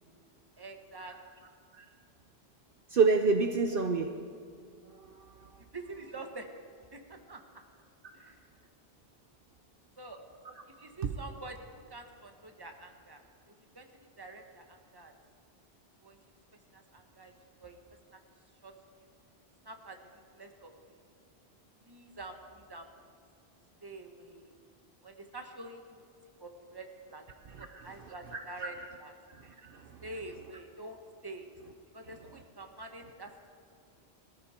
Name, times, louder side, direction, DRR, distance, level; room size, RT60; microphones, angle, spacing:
voice 1, 0.6-1.1 5.7-6.5 6.9-7.4 8.1-8.4 10.0-10.2 10.8-11.6 11.9-13.2 13.5-13.9 14.2-15.1 16.0-16.2 16.7-17.3 17.6-17.8 18.1-18.2 18.6-18.7 19.6-20.0 20.3-20.7 21.9-22.3 22.7-22.8 23.8-24.5 25.0-26.0 26.4-27.2 27.6-29.1 30.0-31.5 31.9-33.5, right 2 dB, 20° right, 4 dB, 1.3 m, -46 dB
voice 2, 2.9-4.1 5.0-5.3 27.5-28.7 29.6-29.9, right 4 dB, 60° right, 5 dB, 0.9 m, -29 dB
20.5 x 14.0 x 4.4 m, 2.3 s
omnidirectional pair, 1.1 m